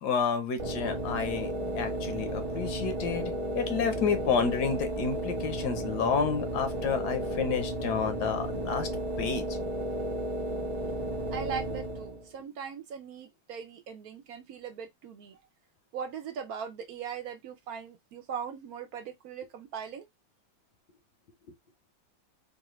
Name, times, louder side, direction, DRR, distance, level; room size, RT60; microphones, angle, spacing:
voice 1, 0.0-8.9 9.2-9.6 10.8-10.9, left 6 dB, 75° left, 1.3 m, -30 dB
sound 1, 0.6-12.3, right 1 dB, 30° right, 0.6 m, -33 dB
voice 2, 11.3-15.4 15.9-20.1, right 7 dB, 65° right, 1.0 m, -39 dB
4.0 x 2.5 x 3.0 m
omnidirectional pair, 1.8 m